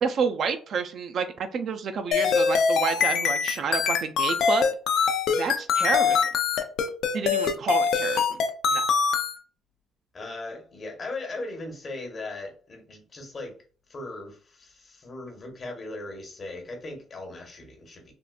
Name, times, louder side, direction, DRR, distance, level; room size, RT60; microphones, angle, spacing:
voice 1, 0.0-4.6 5.3-6.2 7.1-8.4 8.7-8.9, right 5 dB, 55° right, 0.4 m, -29 dB
sound 1, 2.1-9.4, left 6 dB, 75° left, 0.4 m, -23 dB
voice 2, 10.1-13.5 13.9-18.1, left 2 dB, 35° left, 0.9 m, -38 dB
3.5 x 2.4 x 2.3 m
cardioid pair, 130°, 0 cm